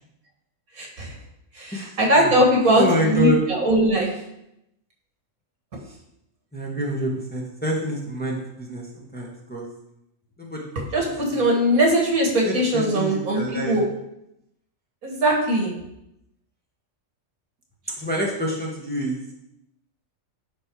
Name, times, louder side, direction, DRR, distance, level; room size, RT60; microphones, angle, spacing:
voice 1, 0.8-1.1 1.6-4.1 10.9-13.8 15.0-15.7, equal, 80° right, 0 dB, 2.2 m, -20 dB
voice 2, 1.7-2.3 2.6-3.4 5.9-6.0 6.5-9.6 10.4-11.4 12.4-13.8 18.0-19.2, equal, 5° left, -3 dB, 1.2 m, -27 dB
10.0 x 4.2 x 4.7 m, 0.82 s
omnidirectional pair, 1.5 m